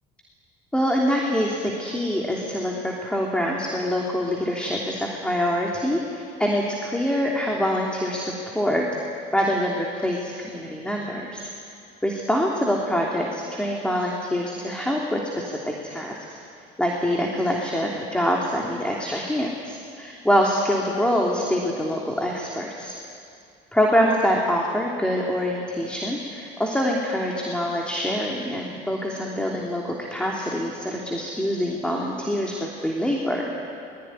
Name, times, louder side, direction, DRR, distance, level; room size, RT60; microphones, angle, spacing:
voice 1, 0.7-8.8 9.3-11.5 12.0-16.4 16.8-22.9 23.7-33.6, equal, 5° left, -2 dB, 3.1 m, -25 dB
22.0 x 21.5 x 9.9 m, 2.4 s
cardioid pair, 115°, 18 cm